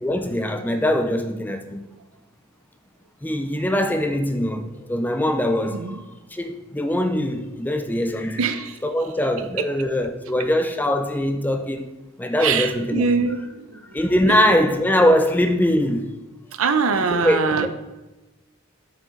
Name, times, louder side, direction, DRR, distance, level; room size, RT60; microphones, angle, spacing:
voice 1, 0.0-1.8 3.2-6.0 6.3-8.4 8.8-11.9 12.2-13.3 13.9-16.1 16.9-17.7, left 1 dB, 10° left, 0.4 m, -22 dB
voice 2, 8.4-8.8 9.6-9.7 12.4-13.8 16.6-17.7, right 5 dB, 75° right, 0.6 m, -23 dB
6.5 x 6.1 x 3.7 m
head